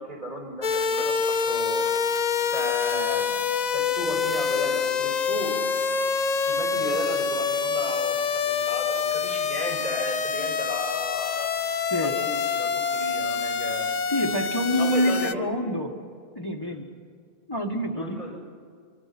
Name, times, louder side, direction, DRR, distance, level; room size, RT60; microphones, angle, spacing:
voice 1, 0.0-1.9 2.5-3.4 3.7-5.6 6.5-11.6 12.0-13.9 14.8-15.8 16.6-16.8 17.9-18.4, equal, 45° right, 0 dB, 6.1 m, -35 dB
sound 1, 0.6-15.3, left 6 dB, 45° left, 0.7 m, -26 dB
voice 2, 14.1-15.9 16.3-16.8 17.5-18.2, equal, 20° left, 1 dB, 1.5 m, -26 dB
24.5 x 24.5 x 6.0 m, 2.1 s
omnidirectional pair, 1.1 m